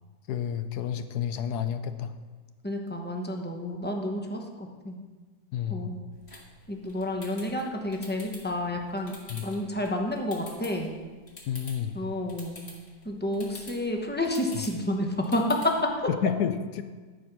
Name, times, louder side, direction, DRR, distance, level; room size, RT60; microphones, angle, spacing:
voice 1, 0.3-2.1 5.5-6.0 9.3-9.4 11.5-12.0 16.2-16.8, left 8 dB, 75° left, 10 dB, 1.1 m, -30 dB
voice 2, 2.6-5.0 5.7-6.0 6.3-6.4 6.7-10.9 11.9-12.6 13.0-15.9, left 1 dB, 10° left, 2 dB, 0.6 m, -30 dB
sound 1, 6.1-15.9, left 1 dB, 40° left, 2.0 m, -49 dB
13.0 x 5.0 x 6.0 m, 1.4 s
omnidirectional pair, 1.8 m